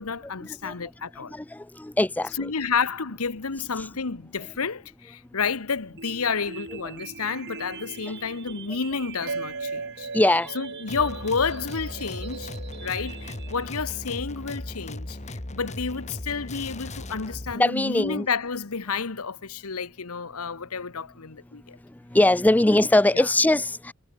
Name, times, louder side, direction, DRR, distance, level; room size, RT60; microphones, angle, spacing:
voice 1, 0.0-1.4 2.2-12.5 12.8-21.8 23.1-23.3, left 5 dB, 80° left, 1.2 m, -30 dB
voice 2, 1.8-2.5 10.1-10.5 17.5-18.3 22.1-23.9, left 1 dB, 5° left, 0.4 m, -21 dB
sound 1, 6.0-14.0, right 5 dB, 50° right, 4.8 m, -43 dB
sound 2, 9.3-14.0, right 4 dB, 75° right, 1.7 m, -38 dB
sound 3, 10.9-17.6, left 1 dB, 30° left, 1.7 m, -37 dB
head